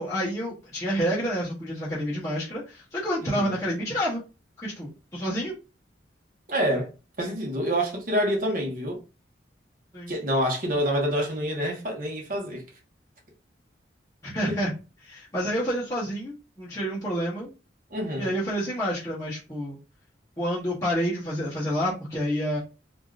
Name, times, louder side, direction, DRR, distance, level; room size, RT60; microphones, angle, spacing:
voice 1, 0.0-4.2 4.6-5.5 9.9-10.1 14.2-14.7 15.0-17.5 18.2-19.8 20.4-22.6, equal, 15° left, 0.9 m, -29 dB
voice 2, 3.2-3.5 6.5-6.9 7.2-9.0 10.1-12.6 14.5-14.6 17.9-18.4, equal, 45° right, 1.0 m, -27 dB
3.5 x 2.5 x 2.4 m
head